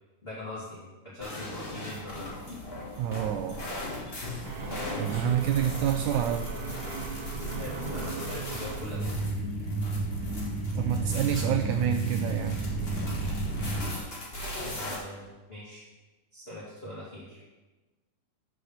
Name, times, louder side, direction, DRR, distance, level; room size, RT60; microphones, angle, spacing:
voice 1, 0.2-2.3 7.6-9.3 14.6-15.8 16.3-17.4, left 1 dB, 20° left, -9 dB, 1.9 m, -42 dB
sound 1, 1.2-15.0, equal, 35° left, 0.9 m, -38 dB
voice 2, 3.0-3.7 5.0-6.5 10.7-12.7, right 10 dB, 85° right, 4 dB, 1.7 m, -28 dB
sound 2, 4.4-9.4, right 5 dB, 65° right, 2.1 m, -39 dB
sound 3, 8.8-14.0, right 2 dB, 5° left, 2.4 m, -32 dB
7.9 x 6.4 x 6.7 m, 1.2 s
omnidirectional pair, 4.0 m